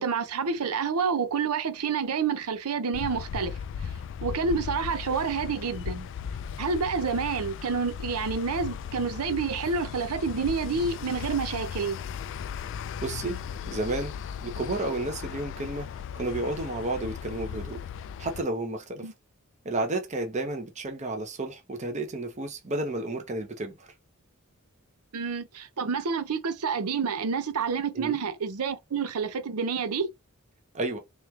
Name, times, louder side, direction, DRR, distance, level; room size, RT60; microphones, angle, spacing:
voice 1, 0.0-3.6 4.2-6.1 6.6-12.0 19.0-19.1 25.1-30.1, right 5 dB, 85° right, 0.6 m, -28 dB
sound 1, 2.9-18.4, left 7 dB, 60° left, 0.3 m, -37 dB
voice 2, 13.0-13.4 13.6-14.1 14.4-15.9 16.1-17.8 18.2-19.1 19.6-23.9 27.9-28.2 30.7-31.0, right 2 dB, 35° right, 0.8 m, -31 dB
3.5 x 3.2 x 3.1 m
head